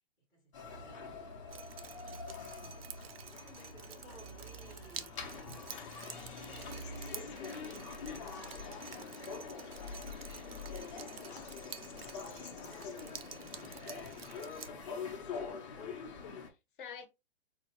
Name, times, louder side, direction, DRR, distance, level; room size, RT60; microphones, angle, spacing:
voice 1, 0.3-1.4 1.7-5.3 6.1-14.1, right 1 dB, ahead, 0.4 m, -60 dB
sound 1, 0.5-16.5, left 4 dB, 30° left, 0.7 m, -45 dB
Drip, 1.5-14.7, right 8 dB, 65° right, 0.6 m, -50 dB
sound 2, 5.6-13.8, left 8 dB, 75° left, 0.7 m, -55 dB
voice 2, 7.2-8.7 16.2-17.1, left 7 dB, 50° left, 0.9 m, -51 dB
4.2 x 2.3 x 2.9 m
hypercardioid pair, 165°, 32 cm